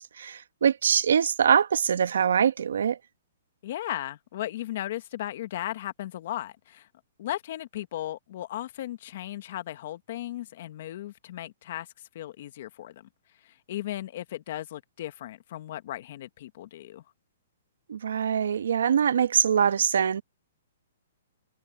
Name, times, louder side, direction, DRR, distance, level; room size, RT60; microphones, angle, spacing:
voice 1, 0.0-3.0 17.9-20.2, right 7 dB, 75° right, 1.4 m, -23 dB
voice 2, 3.6-6.9 7.2-11.9 12.1-13.1 13.4-17.0, left 13 dB, 50° left, 1.5 m, -36 dB
hypercardioid pair, 155°, 0 cm